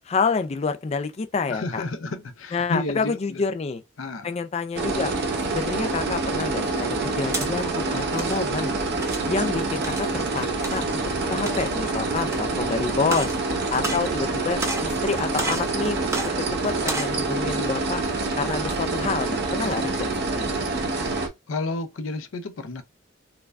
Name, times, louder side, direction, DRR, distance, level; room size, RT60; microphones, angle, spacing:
voice 1, 0.1-1.8 2.5-3.8 4.2-5.1 5.5-8.8 9.2-11.0 11.3-13.3 13.7-16.0 16.4-18.0 18.4-20.4, left 4 dB, 30° left, 0.3 m, -28 dB
voice 2, 1.5-3.4 4.0-4.3 21.5-22.8, left 2 dB, 80° left, 0.5 m, -31 dB
sound 1, 4.7-21.3, right 3 dB, 55° right, 0.8 m, -26 dB
sound 2, 7.3-7.5 8.0-8.4 9.0-9.3 9.8-10.1 10.6-10.8 11.3-11.8 12.3-12.4 13.0-13.4 13.7-14.3 14.6-14.9 15.4-15.7 16.1-16.3 16.8-17.2, right 2 dB, 15° right, 0.6 m, -30 dB
4.6 x 2.2 x 2.4 m
head